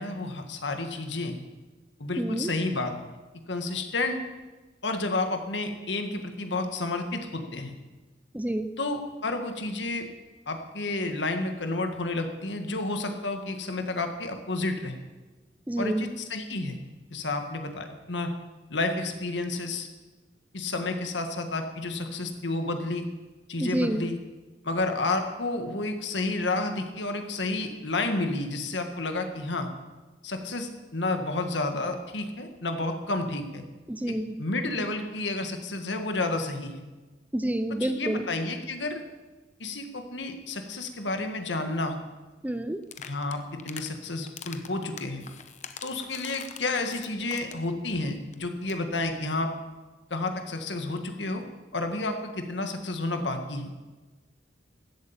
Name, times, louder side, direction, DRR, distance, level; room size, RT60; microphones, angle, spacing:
voice 1, 0.0-1.3 2.0-2.9 3.5-4.2 4.8-7.7 8.8-10.1 10.5-15.0 15.8-16.8 17.1-18.3 18.7-19.9 20.5-23.1 23.5-24.2 24.6-29.7 30.2-33.6 34.1-36.8 37.8-39.0 39.6-42.0 43.0-43.4 43.6-45.2 45.8-49.5 50.1-51.4 51.7-53.7, left 2 dB, 75° left, 6 dB, 1.8 m, -30 dB
voice 2, 2.2-2.5 8.3-8.7 15.7-16.1 23.6-24.1 33.9-34.4 37.3-38.2 42.4-42.8, right 1 dB, 10° right, 10 dB, 0.6 m, -28 dB
sound 1, 42.8-43.9 44.3-47.7 48.0-48.1 48.3-48.4 48.6-48.9, left 8 dB, 40° left, 0.9 m, -43 dB
14.0 x 8.5 x 8.7 m, 1.2 s
head